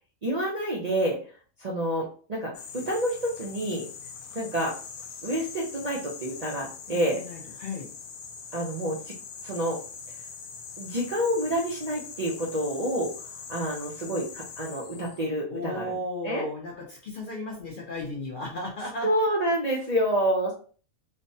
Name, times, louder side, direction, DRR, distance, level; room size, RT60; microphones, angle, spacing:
voice 1, 0.2-1.2 1.6-3.9 4.3-4.7 5.2-7.2 8.5-9.1 9.4-9.8 10.8-13.1 13.5-15.8 16.2-16.5 19.0-20.5, equal, 50° right, -3 dB, 0.5 m, -28 dB
sound 1, 2.5-15.2, left 6 dB, 90° left, 1.0 m, -42 dB
voice 2, 6.9-7.9 15.5-19.1, left 2 dB, 55° left, -1 dB, 0.6 m, -35 dB
3.3 x 2.1 x 2.6 m, 0.40 s
omnidirectional pair, 1.4 m